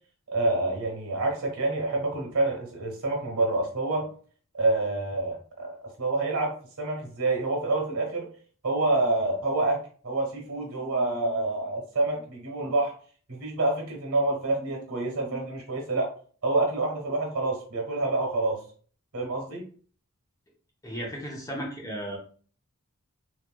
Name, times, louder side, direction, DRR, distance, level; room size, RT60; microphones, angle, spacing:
voice 1, 0.3-4.1 4.5-8.3 8.6-12.9 13.3-16.1 16.4-18.6 19.1-19.6, right 2 dB, 80° right, 0 dB, 1.3 m, -27 dB
voice 2, 20.8-22.2, equal, 15° left, -2 dB, 0.8 m, -35 dB
3.1 x 3.0 x 2.2 m, 0.44 s
head